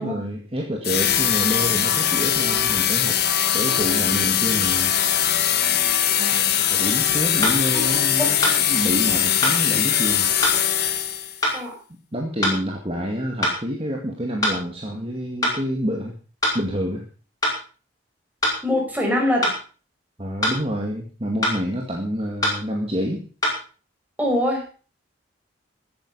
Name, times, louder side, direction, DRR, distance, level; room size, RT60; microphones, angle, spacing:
voice 1, 0.0-3.2 3.5-4.9 6.4-10.3 12.1-16.2 16.5-17.0 20.2-23.2, equal, 30° right, 0 dB, 2.1 m, -28 dB
sound 1, 0.8-11.4, left 10 dB, 55° left, 1.5 m, -21 dB
voice 2, 6.2-6.5 7.7-7.8 8.2-8.3 11.5-11.7 18.6-19.5 24.2-24.6, left 1 dB, 10° right, 0 dB, 4.9 m, -23 dB
sound 2, 7.4-7.6 8.4-8.6 9.4-9.6 10.4-10.6 11.4-11.6 12.4-12.6 13.4-13.6 14.4-14.6 15.4-15.6 16.4-16.6 17.4-17.6 18.4-18.6 19.4-19.6 20.4-20.6 21.4-21.6 22.4-22.6 23.4-23.6, left 1 dB, 20° left, 5.4 m, -22 dB
15.5 x 9.4 x 5.5 m, 0.39 s
head